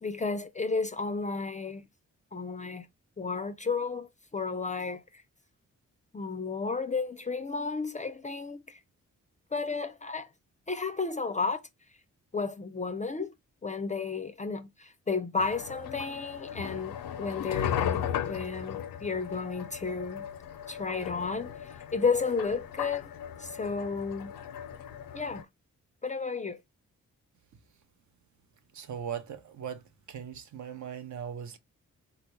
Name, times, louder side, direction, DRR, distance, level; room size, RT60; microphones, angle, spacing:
voice 1, 0.0-1.9 2.3-2.9 3.2-5.2 6.1-8.8 9.5-10.3 10.7-11.6 12.3-13.3 13.6-20.3 20.7-23.1 23.4-24.3 25.1-25.5 26.0-26.6, left 4 dB, 20° left, 0.4 m, -32 dB
sound 1, 15.4-25.4, left 9 dB, 80° left, 0.5 m, -37 dB
voice 2, 28.7-31.6, right 8 dB, 55° right, 0.6 m, -39 dB
3.7 x 2.1 x 2.9 m
supercardioid pair, 45°, 34 cm